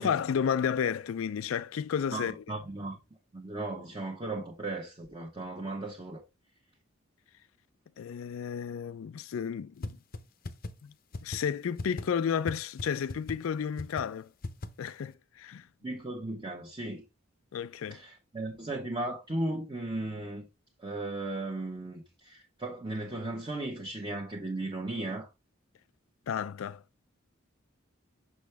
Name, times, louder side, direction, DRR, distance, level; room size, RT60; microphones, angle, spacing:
voice 1, 0.0-2.4 8.0-10.0 10.8-10.9 11.2-14.3 14.8-15.7 17.5-18.0 26.3-26.8, left 7 dB, 80° left, 0.4 m, -32 dB
voice 2, 2.1-3.0 3.3-6.2 15.8-17.0 17.9-20.5 20.8-25.3, right 2 dB, 25° right, 1.1 m, -36 dB
sound 1, 9.8-9.9 10.1-10.2 10.4-10.7 11.1-11.4 11.8-12.0 12.5-12.6 12.8-12.9 13.1-13.3 13.8-14.0 14.4-14.7, left 2 dB, 45° left, 0.7 m, -35 dB
6.1 x 5.8 x 3.4 m
head